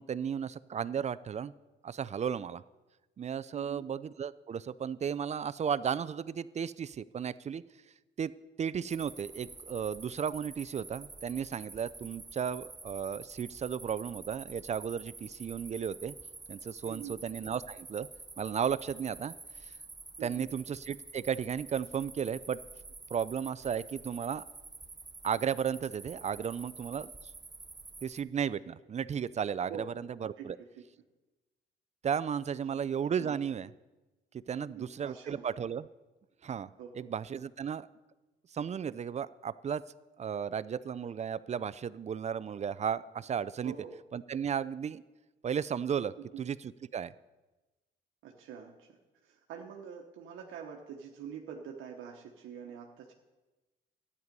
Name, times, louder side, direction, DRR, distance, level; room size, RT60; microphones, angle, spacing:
voice 1, 0.0-1.5 1.8-2.6 3.2-7.6 8.2-8.3 8.6-16.1 16.5-18.1 18.4-19.3 19.6-19.7 20.2-22.6 23.1-24.4 25.2-27.1 28.0-29.7 30.2-30.5 32.0-33.7 34.5-35.9 36.4-37.9 38.5-39.8 40.2-43.7 44.1-45.0 45.4-46.1 46.4-46.6 46.9-47.1, right 7 dB, 35° right, 17 dB, 0.4 m, -34 dB
voice 2, 3.5-3.9 16.8-17.1 20.2-20.5 29.7-30.0 30.4-30.7 32.7-32.8 33.2-33.3 34.6-35.5 36.8-37.1 43.6-44.0 46.2-46.4 48.2-53.1, right 7 dB, 85° right, 1 dB, 1.1 m, -45 dB
sound 1, 8.9-28.2, right 3 dB, 20° right, 0.9 m, -48 dB
12.5 x 9.7 x 5.3 m, 1.1 s
cardioid pair, 90°, 20 cm